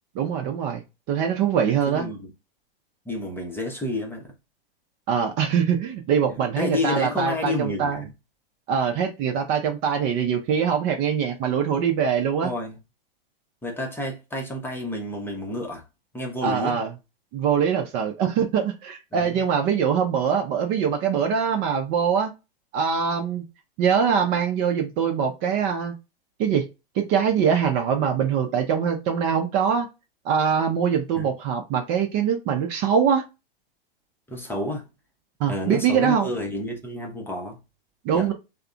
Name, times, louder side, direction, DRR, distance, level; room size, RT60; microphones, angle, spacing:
voice 1, 0.1-2.1 5.1-8.0 8.7-12.5 16.4-16.9 17.3-22.3 22.7-23.4 23.8-25.9 26.4-26.7 27.0-29.9 30.2-33.2 35.4-36.3 38.0-38.3, right 7 dB, 35° right, 0.6 m, -23 dB
voice 2, 1.6-2.3 3.1-4.3 6.3-8.1 12.4-12.8 13.6-15.8 16.1-16.8 19.1-19.4 31.1-31.3 34.3-34.9 35.5-37.6 38.1-38.3, left 1 dB, 5° left, 0.8 m, -30 dB
3.5 x 2.1 x 2.3 m
hypercardioid pair, 120°, 30 cm